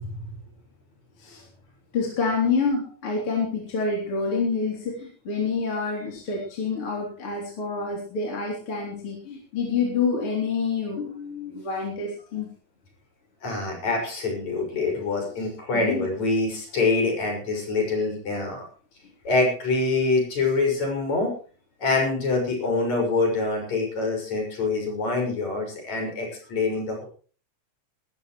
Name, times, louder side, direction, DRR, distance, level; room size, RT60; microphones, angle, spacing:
voice 1, 1.9-12.5 15.7-16.1, left 4 dB, 45° left, -1 dB, 4.3 m, -27 dB
voice 2, 13.4-18.6 19.2-21.3 21.8-27.1, left 3 dB, 65° left, 2 dB, 7.5 m, -25 dB
20.0 x 13.5 x 3.2 m, 0.41 s
omnidirectional pair, 3.5 m